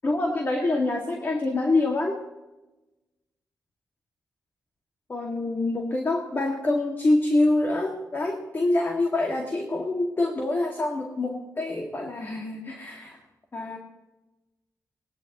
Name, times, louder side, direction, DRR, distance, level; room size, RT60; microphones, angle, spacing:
voice 1, 0.0-2.2 5.1-13.2 13.5-13.8, left 2 dB, 35° left, 1 dB, 2.1 m, -26 dB
22.0 x 19.0 x 3.0 m, 1.0 s
wide cardioid pair, 105°, 6 cm